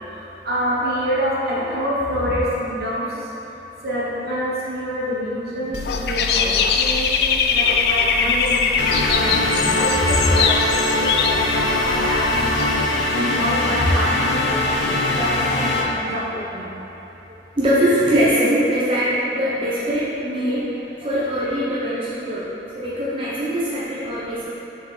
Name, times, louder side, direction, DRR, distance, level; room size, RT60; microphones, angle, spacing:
voice 1, 0.4-3.2 3.8-12.7 13.1-14.8 15.1-16.7, equal, 60° right, -7 dB, 1.1 m, -26 dB
Dog / Bird, 5.7-12.7, left 6 dB, 65° left, 0.3 m, -22 dB
sound 1, 8.8-15.8, left 2 dB, 85° left, 0.7 m, -21 dB
voice 2, 17.6-20.7 21.0-24.4, equal, 30° right, -9 dB, 0.8 m, -22 dB
6.4 x 4.9 x 3.3 m, 3.0 s
head